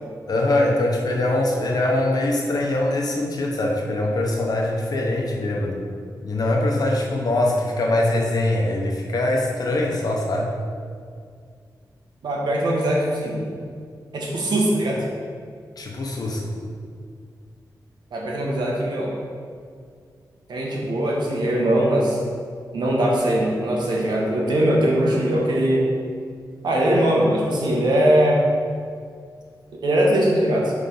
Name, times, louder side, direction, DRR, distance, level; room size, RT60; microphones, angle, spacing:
voice 1, 0.3-5.8 6.2-10.5 15.8-16.5, left 1 dB, 60° left, 0 dB, 1.0 m, -22 dB
voice 2, 12.2-13.5 14.1-15.0 18.1-19.1 20.5-22.2 22.7-25.9 26.6-28.4 29.7-30.7, right 1 dB, 80° right, -3 dB, 1.3 m, -21 dB
5.3 x 3.6 x 5.5 m, 2.1 s
wide cardioid pair, 105°, 7 cm